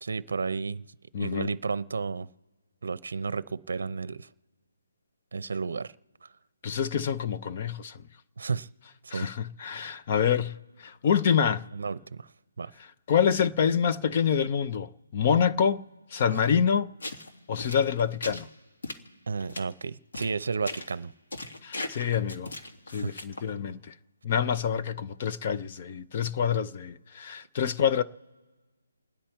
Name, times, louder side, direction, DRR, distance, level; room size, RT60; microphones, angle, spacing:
voice 1, 0.0-0.8 1.2-2.3 2.8-4.3 5.3-5.9 6.2-6.3 8.4-8.7 9.0-9.3 11.7-12.3 12.6-12.7 16.3-16.4 19.3-21.1 22.9-23.2, right 4 dB, 60° right, 0.7 m, -32 dB
voice 2, 1.1-1.5 6.6-8.0 9.1-11.6 13.1-15.8 16.1-16.9 17.5-18.5 21.6-22.5 22.9-23.9 24.2-28.0, left 7 dB, 25° left, 0.5 m, -26 dB
sound 1, 17.0-17.3 17.6-18.4 18.8-19.0 19.4-19.6 20.1-20.4 20.7-21.0 21.3-23.5, left 2 dB, 70° left, 2.1 m, -38 dB
29.5 x 10.0 x 4.4 m
hypercardioid pair, 175°, 0 cm